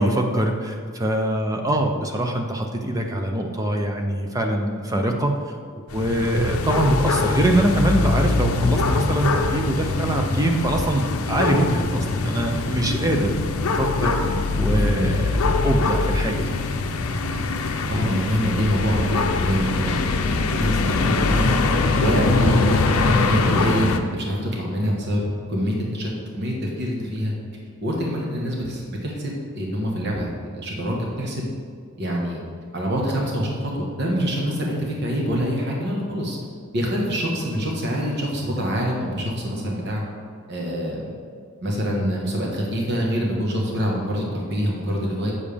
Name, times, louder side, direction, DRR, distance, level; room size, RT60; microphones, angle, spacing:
voice 1, 0.0-5.6 5.9-13.4 13.7-14.1 14.5-15.2 15.6-16.6, right 1 dB, 15° right, 3 dB, 0.5 m, -23 dB
sound 1, 5.9-24.0, left 3 dB, 75° left, 0.6 m, -23 dB
voice 2, 14.7-15.1 17.9-21.6 22.0-25.2 25.5-27.3 27.8-31.5 32.0-32.4 32.7-36.4 36.7-40.0 40.5-41.1 41.6-45.3, equal, 50° right, -2 dB, 1.3 m, -25 dB
8.5 x 7.2 x 3.4 m, 2.2 s
head